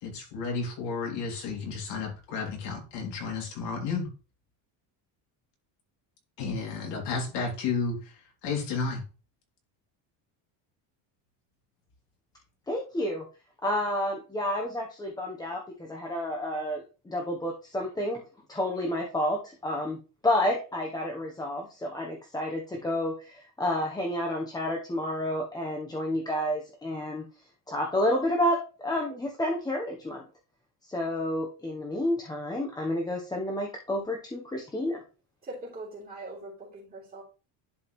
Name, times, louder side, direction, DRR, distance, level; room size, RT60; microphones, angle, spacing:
voice 1, 0.0-4.1 6.4-8.1 8.4-9.0, left 4 dB, 60° left, 1 dB, 2.8 m, -32 dB
voice 2, 12.7-13.3 13.6-18.2 18.5-27.3 27.7-30.3 30.9-35.0, left 1 dB, 10° left, 0 dB, 0.8 m, -30 dB
voice 3, 35.4-37.2, right 2 dB, 20° right, -3 dB, 3.3 m, -41 dB
11.0 x 4.6 x 3.0 m, 0.35 s
cardioid pair, 170°, 46 cm